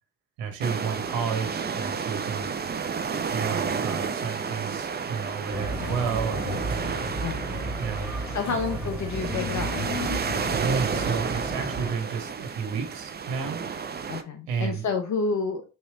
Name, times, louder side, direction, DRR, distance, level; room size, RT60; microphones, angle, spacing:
voice 1, 0.4-2.5 3.3-7.1 7.8-8.6 10.5-13.6 14.5-14.9, right 6 dB, 75° right, 1.4 m, -32 dB
sound 1, 0.6-14.2, right 6 dB, 20° right, 0.6 m, -31 dB
sound 2, 5.5-11.9, equal, 5° right, 2.2 m, -33 dB
voice 2, 8.3-9.8 14.1-15.6, left 4 dB, 40° left, 0.8 m, -29 dB
4.2 x 3.1 x 3.6 m
supercardioid pair, 70°, 45 cm